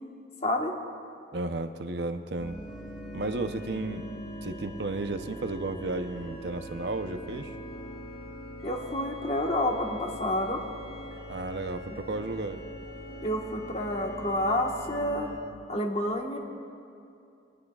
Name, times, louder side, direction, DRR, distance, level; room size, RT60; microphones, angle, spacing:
voice 1, 0.4-0.7 8.6-10.6 13.2-15.3 15.7-16.4, left 1 dB, 35° left, 1 dB, 1.3 m, -29 dB
voice 2, 1.3-2.6 3.1-4.0 4.4-7.6 11.3-12.6, right 2 dB, 70° right, 8 dB, 0.7 m, -33 dB
sound 1, 2.4-15.4, equal, 65° left, 3.0 m, -42 dB
22.5 x 18.5 x 2.4 m, 2.5 s
head